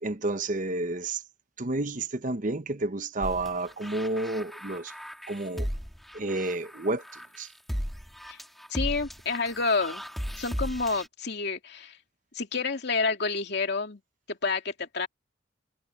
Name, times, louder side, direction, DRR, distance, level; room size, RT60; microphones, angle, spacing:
voice 1, 0.0-1.2 1.6-4.9 5.3-5.7 6.1-7.5, right 2 dB, 40° right, 1.0 m, -30 dB
sound 1, 3.2-11.1, equal, ahead, 1.8 m, -36 dB
voice 2, 8.7-10.0 10.4-12.0 12.3-14.0 14.3-15.1, left 4 dB, 60° left, 2.6 m, -29 dB
head